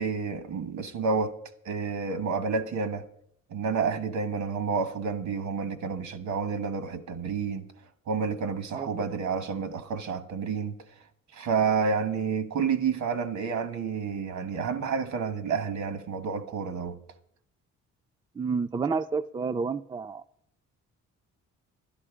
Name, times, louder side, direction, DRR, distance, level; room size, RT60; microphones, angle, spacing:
voice 1, 0.0-1.3 1.6-3.0 3.5-7.7 8.1-10.7 11.3-17.0, right 5 dB, 70° right, 1.3 m, -29 dB
voice 2, 8.7-9.1 18.4-20.2, right 5 dB, 15° right, 0.4 m, -30 dB
11.5 x 11.0 x 5.0 m
cardioid pair, 90°, 30 cm